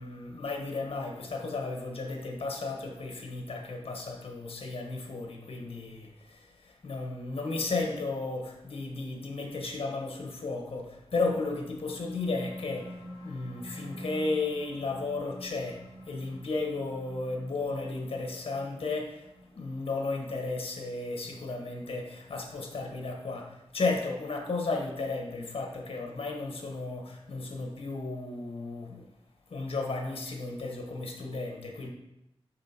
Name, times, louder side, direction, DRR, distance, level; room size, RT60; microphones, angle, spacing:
voice 1, 0.0-13.0 13.2-29.1 29.5-31.9, left 3 dB, 70° left, 1 dB, 1.5 m, -34 dB
sound 1, 11.7-22.5, equal, 35° left, 2.2 m, -47 dB
7.5 x 5.7 x 4.4 m, 0.89 s
wide cardioid pair, 120°, 10 cm